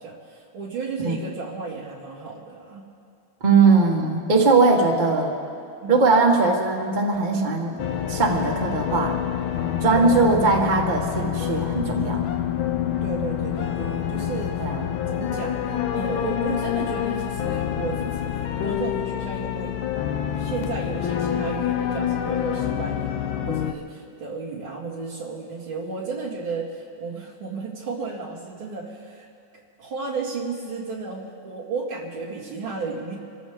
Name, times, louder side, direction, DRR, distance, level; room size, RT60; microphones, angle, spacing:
voice 1, 0.0-2.9 5.8-6.0 9.9-10.2 13.0-14.6 15.1-15.6 15.9-19.8 20.3-29.3 29.5-33.2, right 4 dB, 85° right, -4 dB, 3.1 m, -33 dB
voice 2, 3.4-5.3 5.9-7.7 8.1-9.2 9.8-12.2 14.6-14.8, right 3 dB, 25° right, 0 dB, 1.5 m, -20 dB
sound 1, 7.8-23.7, left 10 dB, 80° left, 1.5 m, -27 dB
26.5 x 14.0 x 3.6 m, 2.5 s
omnidirectional pair, 2.2 m